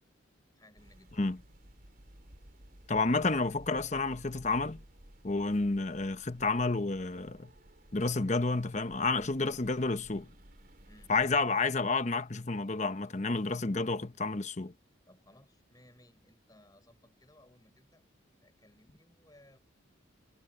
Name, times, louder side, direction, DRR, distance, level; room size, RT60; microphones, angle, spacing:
voice 1, 0.6-1.1 10.9-11.1 15.1-18.0 18.4-19.6, left 1 dB, 20° left, 7.0 m, -61 dB
sound 1, 0.8-11.4, equal, 45° right, 4.2 m, -56 dB
voice 2, 2.9-4.8 5.2-7.5 7.9-10.3 11.1-14.7, left 3 dB, 35° left, 0.9 m, -30 dB
head